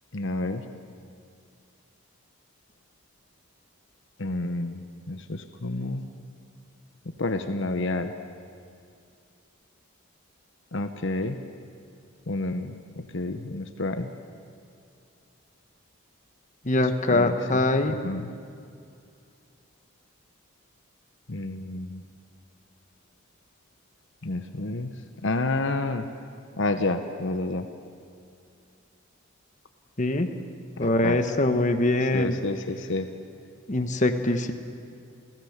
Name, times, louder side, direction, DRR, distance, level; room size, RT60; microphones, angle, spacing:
voice 1, 0.1-0.6 4.2-6.1 7.2-8.1 10.7-11.4 12.3-12.8 13.1-14.1 17.1-17.4 17.9-18.3 21.3-22.0 24.2-24.9 25.2-26.1 26.6-27.7 30.8-31.2 32.1-33.1, left 2 dB, 60° left, 8 dB, 1.0 m, -29 dB
voice 2, 16.6-17.9 30.0-30.3 30.8-32.4 33.7-34.5, left 2 dB, 35° left, 7 dB, 1.2 m, -23 dB
29.0 x 17.0 x 7.3 m, 2.4 s
head